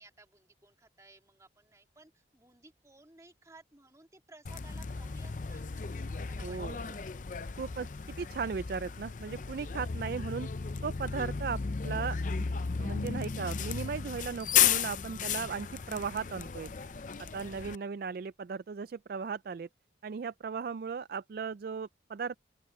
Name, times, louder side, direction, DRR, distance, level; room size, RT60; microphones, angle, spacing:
voice 1, 0.0-7.0 17.5-17.9, right 2 dB, 15° right, 2.9 m, -58 dB
Bus, 4.5-17.8, left 7 dB, 45° left, 0.5 m, -34 dB
voice 2, 6.4-6.8 7.6-7.9 8.2-10.5 10.8-12.5 12.8-16.7 17.2-19.7 20.0-22.4, right 5 dB, 55° right, 0.3 m, -37 dB
open air
head